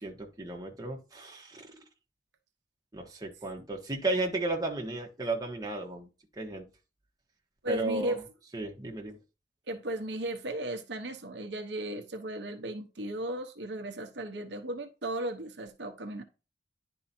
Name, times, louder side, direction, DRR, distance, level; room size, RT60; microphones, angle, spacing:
voice 1, 0.0-1.8 2.9-6.1 6.4-6.7 7.7-8.1 8.5-9.2, right 2 dB, 20° right, 1.4 m, -34 dB
voice 2, 7.6-8.2 9.7-16.2, right 1 dB, 70° right, 1.1 m, -35 dB
10.5 x 4.8 x 2.8 m
head